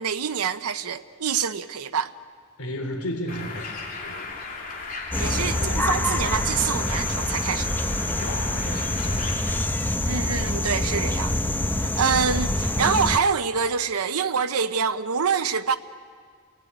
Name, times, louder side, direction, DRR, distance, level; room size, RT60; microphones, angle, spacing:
voice 1, 0.0-2.1 5.2-7.7 10.1-11.3 11.8-15.8, right 6 dB, 90° right, 0.8 m, -26 dB
voice 2, 2.6-3.8 4.0-4.3 5.1-5.9 8.2-9.3, left 1 dB, 85° left, 3.5 m, -33 dB
Bird, 3.3-9.6, left 3 dB, 40° left, 3.3 m, -37 dB
sound 1, 5.1-13.2, left 1 dB, 10° left, 0.8 m, -26 dB
29.5 x 19.0 x 9.3 m
head